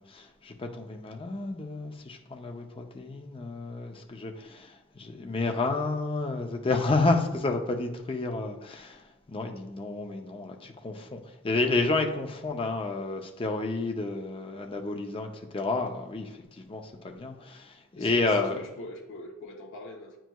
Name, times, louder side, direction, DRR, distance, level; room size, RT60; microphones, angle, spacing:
voice 1, 0.0-9.0 9.3-11.2 11.4-16.4 16.6-18.6, left 3 dB, 25° left, 3 dB, 0.5 m, -30 dB
voice 2, 18.0-20.2, left 1 dB, 65° left, 1 dB, 0.7 m, -43 dB
9.1 x 4.5 x 2.3 m, 0.94 s
head